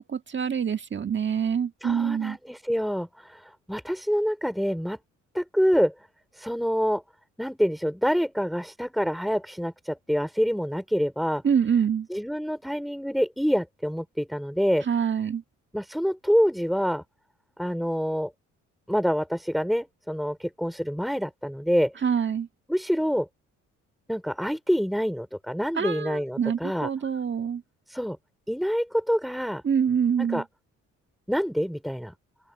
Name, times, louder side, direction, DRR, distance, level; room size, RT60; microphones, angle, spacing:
voice 1, 0.0-2.4 11.4-12.1 14.9-15.4 22.0-22.5 25.7-27.6 29.6-30.4, right 7 dB, 40° right, 1.6 m, -25 dB
voice 2, 1.8-5.0 5.3-5.9 6.3-7.0 7.4-11.4 12.1-14.9 15.7-17.0 17.6-18.3 18.9-21.9 22.7-23.3 24.1-26.9 27.9-28.2 28.5-29.6 30.2-30.4 31.3-32.1, equal, ahead, 3.8 m, -26 dB
cardioid pair, 90°, 30 cm